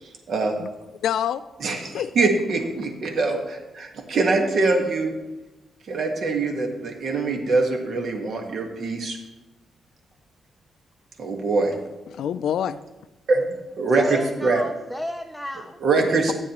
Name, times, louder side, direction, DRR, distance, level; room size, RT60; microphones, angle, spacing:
voice 1, 1.0-2.3 12.1-12.8, left 9 dB, 80° left, 0.3 m, -27 dB
voice 2, 1.6-5.1 5.9-9.2 11.2-11.7 13.3-13.5 13.8-14.0 14.4-14.6 15.8-16.3, right 3 dB, 55° right, 1.5 m, -23 dB
voice 3, 13.9-15.8, left 1 dB, ahead, 0.5 m, -32 dB
15.5 x 9.4 x 3.0 m
cardioid pair, 140°, 0 cm